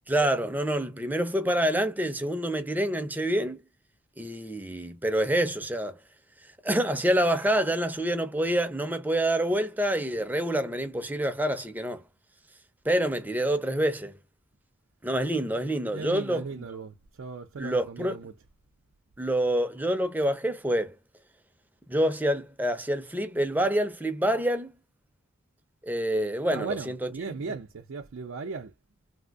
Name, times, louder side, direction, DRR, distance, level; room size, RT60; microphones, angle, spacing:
voice 1, 0.1-3.6 4.2-6.0 6.6-12.0 12.8-14.1 15.0-16.6 17.6-18.2 19.2-20.9 21.9-24.7 25.8-27.3, right 1 dB, 10° right, 0.5 m, -27 dB
voice 2, 15.9-18.3 26.5-28.7, right 4 dB, 75° right, 0.5 m, -37 dB
3.5 x 2.5 x 2.3 m
head